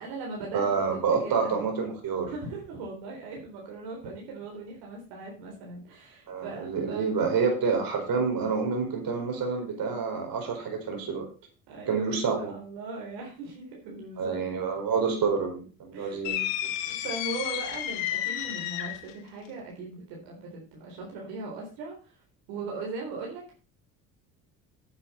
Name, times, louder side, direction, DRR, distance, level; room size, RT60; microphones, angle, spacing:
voice 1, 0.0-1.6 2.2-7.1 11.7-14.4 15.9-16.3 16.8-23.6, right 3 dB, 75° right, -1 dB, 4.2 m, -39 dB
voice 2, 0.5-2.3 6.3-11.3 11.9-12.5 14.2-16.4, right 5 dB, 55° right, 3 dB, 4.9 m, -28 dB
sound 1, 16.2-19.1, left 12 dB, 80° left, 1.4 m, -31 dB
9.6 x 8.1 x 5.6 m, 0.35 s
hypercardioid pair, 65°, 41 cm